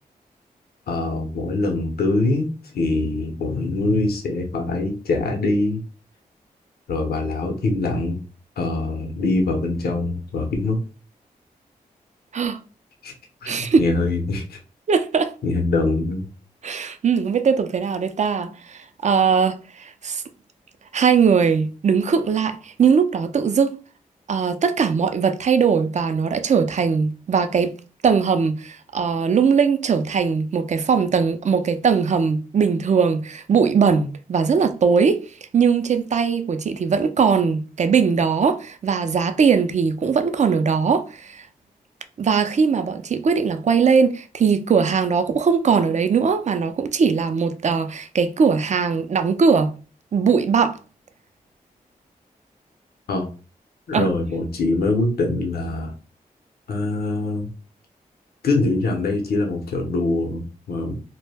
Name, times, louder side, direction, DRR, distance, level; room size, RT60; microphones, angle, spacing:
voice 1, 0.9-2.5 2.7-5.8 6.9-8.2 8.6-10.8 13.0-13.1 13.4-14.6 15.4-16.3 53.1-53.3 53.9-55.9 56.7-57.5 58.4-61.0, left 2 dB, 80° left, 0.6 m, -23 dB
voice 2, 13.5-13.8 14.9-15.3 16.6-20.2 20.9-23.8 24.3-27.7 28.0-35.2 35.5-41.5 42.2-49.7 50.1-50.8 53.9-54.1, right 6 dB, 50° right, 0.4 m, -20 dB
2.1 x 2.1 x 3.2 m
cardioid pair, 45°, 16 cm